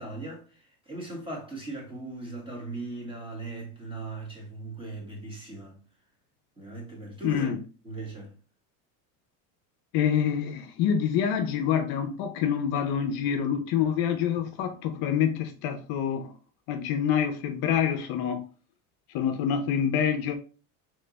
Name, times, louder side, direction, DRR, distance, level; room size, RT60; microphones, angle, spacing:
voice 1, 0.0-5.8 6.6-7.5 7.8-8.3, right 2 dB, 10° right, 1.7 m, -39 dB
voice 2, 7.2-7.6 9.9-16.3 16.7-18.4 19.1-20.4, left 8 dB, 55° left, 0.7 m, -26 dB
3.3 x 3.2 x 4.0 m
supercardioid pair, 120°, 44 cm